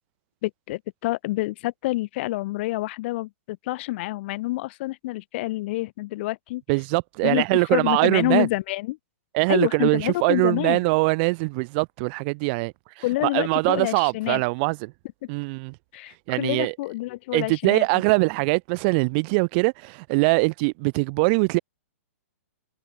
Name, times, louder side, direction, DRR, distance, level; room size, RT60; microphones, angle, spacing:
voice 1, 0.4-6.6 7.2-9.0 9.5-10.8 13.0-14.4 15.9-17.9, left 19 dB, 50° left, 3.5 m, -27 dB
voice 2, 6.7-8.5 9.3-14.9 15.3-15.7 16.3-16.7 17.3-21.6, right 30 dB, 45° right, 7.9 m, -22 dB
hypercardioid pair, 130°, 8 cm